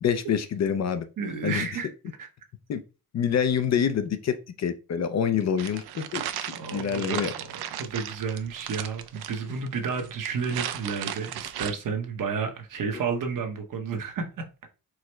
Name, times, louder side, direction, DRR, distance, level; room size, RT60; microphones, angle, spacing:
voice 1, 0.0-1.1 1.4-1.7 2.7-2.8 3.1-7.3, left 8 dB, 45° left, 0.4 m, -26 dB
voice 2, 1.2-1.9 2.2-2.3 6.5-14.5, right 5 dB, 55° right, 0.8 m, -31 dB
sound 1, 5.6-11.7, right 11 dB, 75° right, 0.5 m, -36 dB
4.7 x 2.0 x 4.3 m
wide cardioid pair, 160°, 38 cm